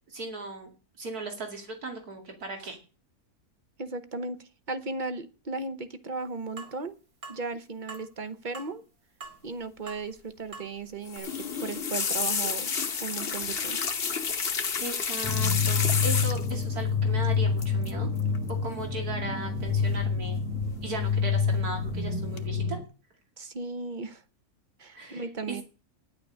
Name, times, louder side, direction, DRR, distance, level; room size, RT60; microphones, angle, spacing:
voice 1, 0.1-0.7 1.0-2.8 14.5-18.1 18.6-20.4 20.8-22.8 24.9-25.6, right 2 dB, 90° right, 2 dB, 3.0 m, -37 dB
voice 2, 3.8-6.9 7.3-8.8 9.4-11.3 11.6-12.7 13.0-13.8 23.4-24.2 24.8-25.6, right 3 dB, 40° right, 11 dB, 0.9 m, -36 dB
sound 1, 6.6-6.8 7.2-7.4 7.9-8.1 8.5-8.8 9.2-9.5 9.9-10.0 10.5-10.7 11.2-11.3, right 4 dB, 75° right, 2.9 m, -43 dB
sound 2, 11.1-16.6 17.6-17.9 18.2-18.5 19.7-20.2 20.6-21.1 21.6-22.0 22.4-22.5, left 6 dB, 45° left, 1.2 m, -31 dB
sound 3, 15.2-22.8, left 5 dB, 10° right, 1.2 m, -27 dB
10.0 x 9.7 x 6.2 m, 0.35 s
omnidirectional pair, 1.6 m